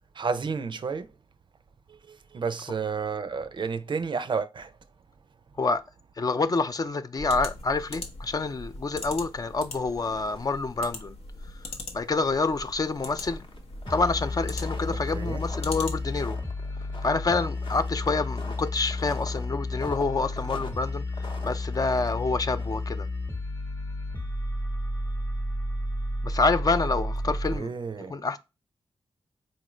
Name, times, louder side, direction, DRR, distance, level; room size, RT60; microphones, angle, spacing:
voice 1, 0.1-1.1 1.9-4.7 14.9-15.4 27.5-28.2, right 5 dB, 50° right, 0.4 m, -31 dB
voice 2, 6.2-11.2 11.9-13.5 13.9-16.4 17.0-23.1 26.2-27.7 28.0-28.4, left 3 dB, 40° left, 0.4 m, -27 dB
sound 1, 7.1-16.3, left 2 dB, 85° left, 0.7 m, -41 dB
sound 2, 9.7-10.6 10.9-11.0 11.4-11.5 12.3-23.0, left 2 dB, 55° left, 0.8 m, -45 dB
sound 3, 13.9-27.6, left 2 dB, 20° left, 0.9 m, -32 dB
4.2 x 2.5 x 3.0 m
cardioid pair, 65°, 10 cm